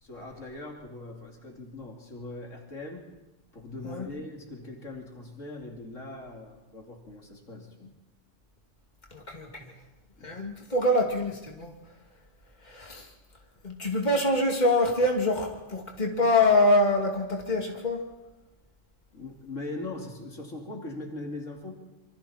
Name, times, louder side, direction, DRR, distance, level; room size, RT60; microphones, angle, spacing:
voice 1, 0.0-3.1 3.5-7.9 10.2-10.4 19.1-21.7, left 2 dB, 85° left, 1 dB, 3.3 m, -40 dB
voice 2, 9.1-9.7 10.2-11.7 12.6-13.1 13.6-18.0, left 1 dB, 35° left, 1 dB, 2.7 m, -25 dB
26.5 x 24.5 x 4.4 m, 1.0 s
omnidirectional pair, 1.3 m